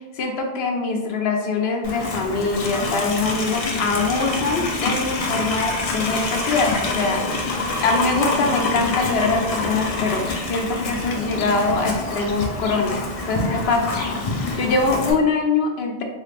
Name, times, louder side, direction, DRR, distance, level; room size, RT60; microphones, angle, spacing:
voice 1, 0.2-13.0 13.3-13.9 14.6-16.0, left 3 dB, 80° left, 2 dB, 0.9 m, -23 dB
Livestock farm animals working animals, 1.8-15.1, left 2 dB, 50° left, 0.4 m, -26 dB
3.2 x 2.4 x 3.2 m, 1.1 s
omnidirectional pair, 1.0 m